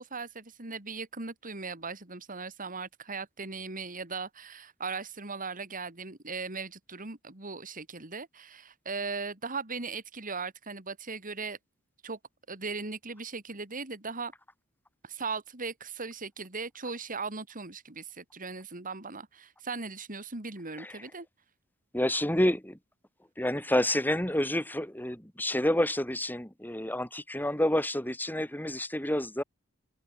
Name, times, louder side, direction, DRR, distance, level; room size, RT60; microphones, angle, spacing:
voice 1, 0.0-11.6 12.0-12.2 12.5-14.3 15.0-21.3, right 4 dB, 40° right, 3.0 m, -38 dB
voice 2, 21.9-22.8 23.4-29.4, left 1 dB, 10° left, 5.6 m, -29 dB
open air
head